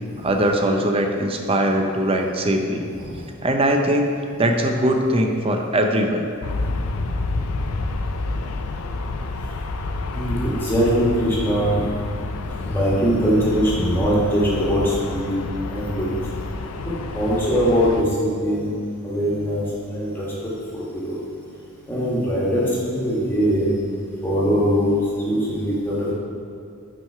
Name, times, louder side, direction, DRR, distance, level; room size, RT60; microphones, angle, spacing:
voice 1, 0.2-2.9 3.4-4.1 4.4-6.3, right 1 dB, 25° right, 4 dB, 0.5 m, -21 dB
Aircraft, 6.4-18.0, left 3 dB, 80° left, 0.5 m, -29 dB
voice 2, 10.1-11.9 12.7-15.4 15.7-16.1 17.1-18.7 19.0-20.3 20.7-21.2 21.9-23.7 24.2-26.1, equal, 10° left, -7 dB, 1.5 m, -21 dB
6.1 x 4.7 x 5.6 m, 2.4 s
head